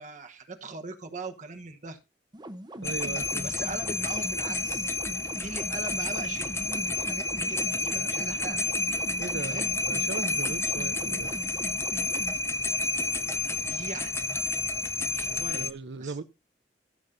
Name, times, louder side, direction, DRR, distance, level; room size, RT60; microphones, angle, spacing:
voice 1, 0.0-2.0 3.4-4.9 5.4-8.6 9.4-9.7 13.7-14.1 15.1-16.2, right 3 dB, 45° right, 1.2 m, -40 dB
sound 1, 2.3-12.3, right 1 dB, 25° right, 0.9 m, -42 dB
sound 2, 2.8-15.7, left 2 dB, 15° left, 0.6 m, -30 dB
voice 2, 2.8-3.5 9.2-11.4 15.5-16.2, right 4 dB, 80° right, 0.6 m, -38 dB
14.5 x 7.3 x 2.6 m
head